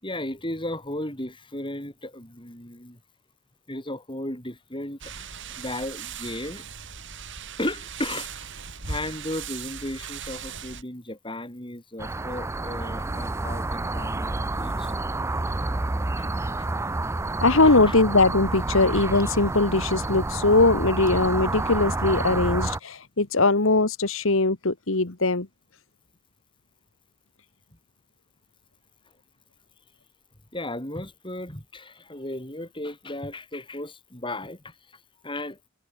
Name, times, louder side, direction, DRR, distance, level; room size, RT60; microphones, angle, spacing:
voice 1, 0.0-3.0 3.7-6.6 7.6-8.3 8.9-15.0 16.2-16.7 17.4-17.9 22.5-22.6 30.5-34.7 35.2-35.6, left 1 dB, 20° left, 7.5 m, -35 dB
sound 1, 5.0-10.8, right 6 dB, 55° right, 4.9 m, -38 dB
sound 2, 12.0-22.8, right 2 dB, 10° right, 0.4 m, -29 dB
voice 2, 17.4-25.5, left 3 dB, 65° left, 1.6 m, -21 dB
head